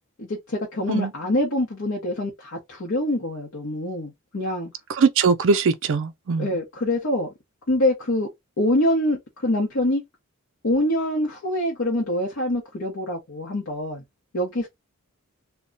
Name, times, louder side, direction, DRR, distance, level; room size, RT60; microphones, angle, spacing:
voice 1, 0.2-4.7 6.4-7.3 7.7-8.3 8.6-10.0 10.6-14.0 14.3-14.7, left 1 dB, 60° left, 0.8 m, -25 dB
voice 2, 5.0-6.5, right 5 dB, 60° right, 0.4 m, -21 dB
2.2 x 2.1 x 3.7 m
head